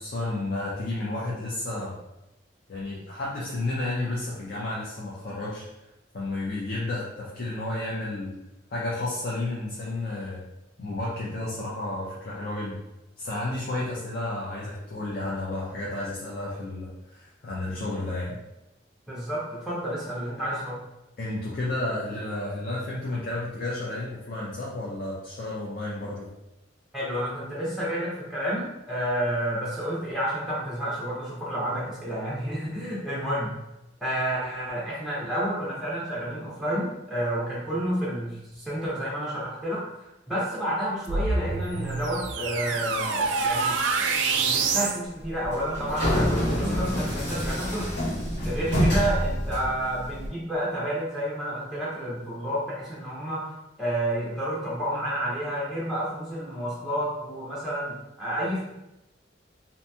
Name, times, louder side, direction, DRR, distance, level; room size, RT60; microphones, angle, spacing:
voice 1, 0.0-2.0 2.7-5.6 6.1-8.3 8.7-10.5 10.8-12.8 13.2-18.4 21.2-26.3, left 2 dB, 50° left, -6 dB, 0.5 m, -32 dB
voice 2, 19.1-20.8 26.9-33.6 34.0-43.8 44.3-47.9 48.4-53.5 53.8-58.6, right 1 dB, ahead, -8 dB, 0.5 m, -30 dB
sound 1, 41.1-45.0, right 4 dB, 75° right, 0.3 m, -26 dB
sound 2, 45.2-50.3, equal, 65° left, 1.1 m, -27 dB
2.8 x 2.6 x 2.2 m, 0.93 s
head